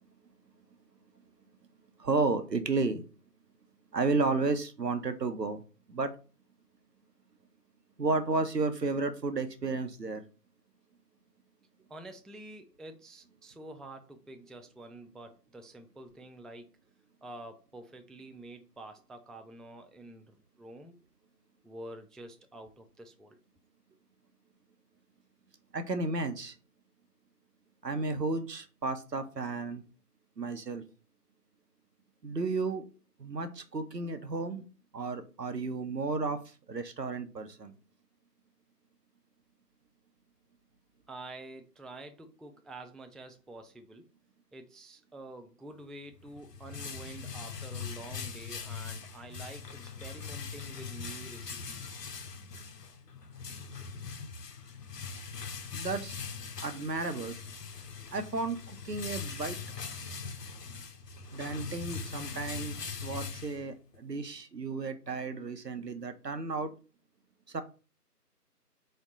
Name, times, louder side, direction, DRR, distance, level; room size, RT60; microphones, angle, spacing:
voice 1, 2.0-3.0 3.9-5.6 5.9-6.1 8.0-10.2 25.7-26.5 27.8-29.8 30.4-30.8 32.2-32.9 33.2-34.6 34.9-37.8 55.7-56.2 56.6-57.4 58.1-59.6 61.3-66.7 67.5-67.6, right 3 dB, 80° right, 9 dB, 0.9 m, -33 dB
voice 2, 11.9-16.7 17.2-20.9 21.6-23.4 41.1-44.0 44.5-52.0, right 2 dB, ahead, 7 dB, 0.3 m, -48 dB
sound 1, 46.1-64.0, left 5 dB, 80° left, 0.7 m, -41 dB
4.3 x 2.1 x 3.8 m, 0.34 s
figure-of-eight pair, 165°, 48 cm